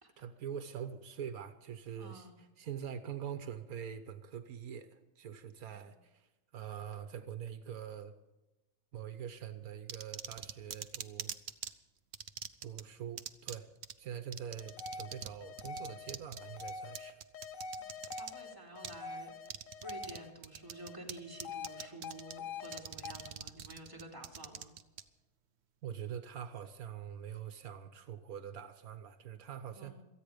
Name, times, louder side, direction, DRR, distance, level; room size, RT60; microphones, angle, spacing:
voice 1, 0.2-6.3 6.5-8.1 8.9-11.3 12.6-13.7 14.0-17.2 25.8-30.0, right 8 dB, 80° right, 10 dB, 1.4 m, -44 dB
voice 2, 2.0-2.4 5.7-5.9 17.8-19.5 19.8-24.7 29.8-30.0, right 1 dB, 15° right, -1 dB, 2.9 m, -50 dB
sound 1, 9.9-11.7 12.1-12.8 13.2-13.6 13.8-13.9 14.3-15.3 15.6-18.3 18.8-19.0 19.5-20.2 20.4-21.1 21.4-22.3 22.7-25.0, right 8 dB, 55° right, 0.9 m, -43 dB
sound 2, 14.6-20.3 20.7-22.8 23.0-23.3, left 4 dB, 65° left, 1.4 m, -45 dB
27.5 x 9.2 x 5.1 m, 1.0 s
omnidirectional pair, 1.5 m